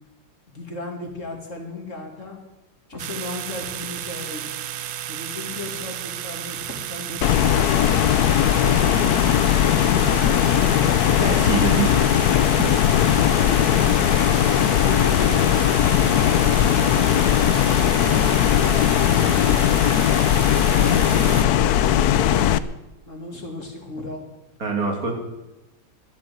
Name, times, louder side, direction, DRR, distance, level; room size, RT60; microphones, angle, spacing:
voice 1, 0.5-2.4 2.9-4.5 5.1-7.5 8.2-10.8 13.2-13.9 14.4-19.7 23.1-24.3, left 2 dB, 40° left, 2 dB, 3.0 m, -35 dB
sound 1, 3.0-21.5, right 12 dB, 85° right, 1.5 m, -33 dB
sound 2, 7.2-22.6, left 10 dB, 65° left, 1.0 m, -18 dB
voice 2, 11.2-12.1 12.5-12.6 24.6-25.1, right 4 dB, 50° right, 2 dB, 3.4 m, -25 dB
12.5 x 12.0 x 7.8 m, 0.98 s
omnidirectional pair, 2.1 m